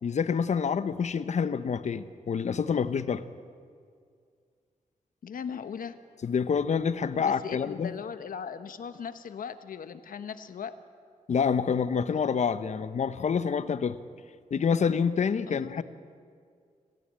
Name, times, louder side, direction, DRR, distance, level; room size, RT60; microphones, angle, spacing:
voice 1, 0.0-3.2 6.2-7.9 11.3-14.0 14.5-15.8, left 6 dB, 55° left, 13 dB, 0.8 m, -27 dB
voice 2, 5.2-6.0 7.2-10.7 15.5-15.8, left 7 dB, 85° left, 11 dB, 1.2 m, -38 dB
27.0 x 15.0 x 8.9 m, 2.2 s
wide cardioid pair, 165°, 14 cm